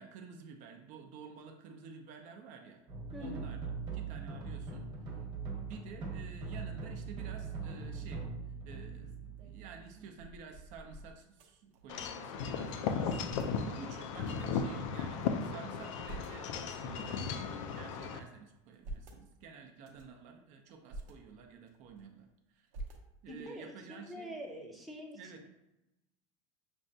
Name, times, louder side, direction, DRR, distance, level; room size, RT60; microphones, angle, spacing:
voice 1, 0.0-2.8 3.2-5.2 5.6-8.3 8.6-22.7 23.2-24.4 25.1-25.5, right 5 dB, 50° right, 4 dB, 0.6 m, -51 dB
sound 1, 2.9-10.1, right 4 dB, 25° right, 1.1 m, -41 dB
voice 2, 3.1-3.4 23.3-25.5, left 1 dB, ahead, -2 dB, 0.6 m, -45 dB
sound 2, 8.9-12.3 12.6-12.7 12.9-13.5 14.2-15.3 15.7-16.5 17.0-18.0 18.5-19.2 19.7-20.2 20.7-21.1 21.6-22.3 22.7-23.4, right 2 dB, 85° right, 0.7 m, -50 dB
Wind chime / Wind, 11.9-18.2, left 6 dB, 75° left, 0.5 m, -36 dB
6.0 x 2.2 x 2.7 m, 0.91 s
supercardioid pair, 130°, 16 cm